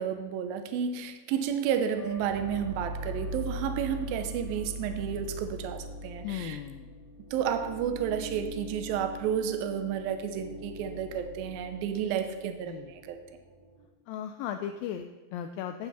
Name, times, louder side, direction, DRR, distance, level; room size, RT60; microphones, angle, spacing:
voice 1, 0.0-6.6 7.3-13.2, right 8 dB, 80° right, 7 dB, 2.5 m, -31 dB
sound 1, 1.9-13.9, equal, 55° right, 2.0 m, -41 dB
voice 2, 6.2-6.9 12.6-12.9 14.1-15.9, left 9 dB, 85° left, 7 dB, 2.1 m, -36 dB
10.5 x 8.6 x 4.1 m, 1.2 s
omnidirectional pair, 4.4 m